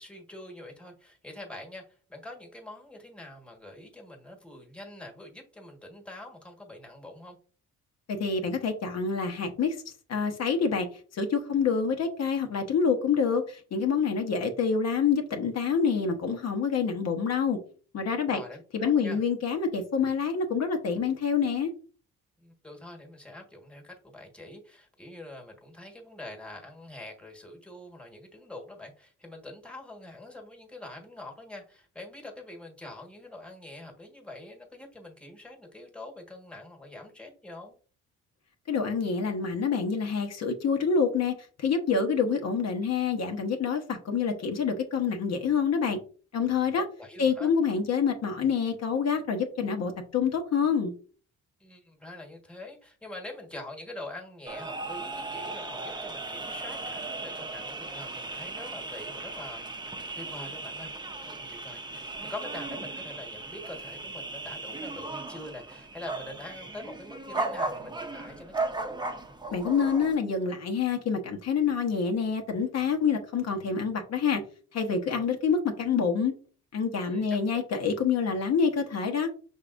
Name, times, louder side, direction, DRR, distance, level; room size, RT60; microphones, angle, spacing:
voice 1, 0.0-7.4 18.3-19.2 22.4-37.7 46.8-47.5 51.6-59.8 60.1-60.9 61.2-69.0 77.0-77.4, left 2 dB, 5° left, 1.4 m, -44 dB
voice 2, 8.1-9.8 10.1-10.9 11.1-17.6 17.9-18.4 18.7-21.7 38.7-46.0 46.3-46.8 47.2-50.9 69.5-74.4 74.7-76.3 76.7-79.3, left 6 dB, 60° left, 1.0 m, -27 dB
sound 1, 54.5-70.2, right 2 dB, 15° right, 0.7 m, -36 dB
5.6 x 3.6 x 2.5 m
cardioid pair, 90°, 30 cm